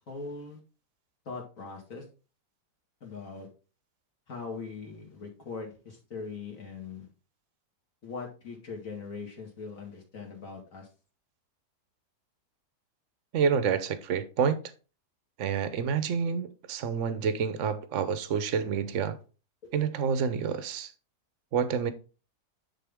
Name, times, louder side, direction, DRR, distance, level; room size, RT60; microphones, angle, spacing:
voice 1, 0.1-0.6 1.3-2.0 3.0-3.5 4.3-7.1 8.0-10.9 19.6-19.7, left 4 dB, 50° left, 2.5 m, -41 dB
voice 2, 13.3-14.6 15.4-19.2 19.7-20.9 21.5-21.9, right 6 dB, 55° right, 1.0 m, -28 dB
10.0 x 4.1 x 3.5 m
omnidirectional pair, 1.8 m